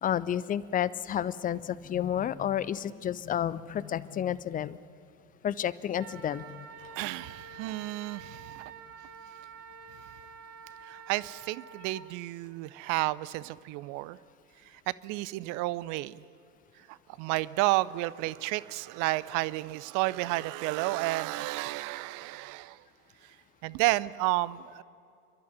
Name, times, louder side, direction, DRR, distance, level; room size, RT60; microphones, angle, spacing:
voice 1, 0.0-4.8 5.4-6.9, left 10 dB, 20° left, 18 dB, 0.4 m, -31 dB
Wind instrument woodwind instrument, 6.0-12.0, right 6 dB, 75° right, 2.8 m, -48 dB
voice 2, 6.8-8.7 10.8-14.2 14.6-16.2 16.9-22.8 23.2-23.3 23.6-24.8, right 19 dB, 45° right, 19 dB, 0.6 m, -31 dB
29.5 x 12.0 x 9.7 m, 2.5 s
figure-of-eight pair, 70°, 46 cm